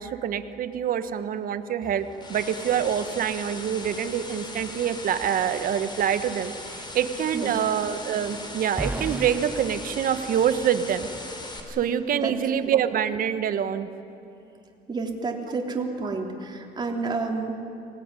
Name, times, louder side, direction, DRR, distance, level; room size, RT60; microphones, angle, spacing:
voice 1, 0.0-11.1 11.7-13.9, right 9 dB, 55° right, 10 dB, 1.4 m, -26 dB
sound 1, 1.8-11.6, left 2 dB, 25° left, 4.0 m, -39 dB
sound 2, 8.8-10.9, right 2 dB, 10° right, 0.5 m, -35 dB
voice 2, 14.9-17.5, right 4 dB, 25° right, 1 dB, 3.4 m, -30 dB
24.5 x 18.0 x 9.9 m, 2.7 s
cardioid pair, 110°, 17 cm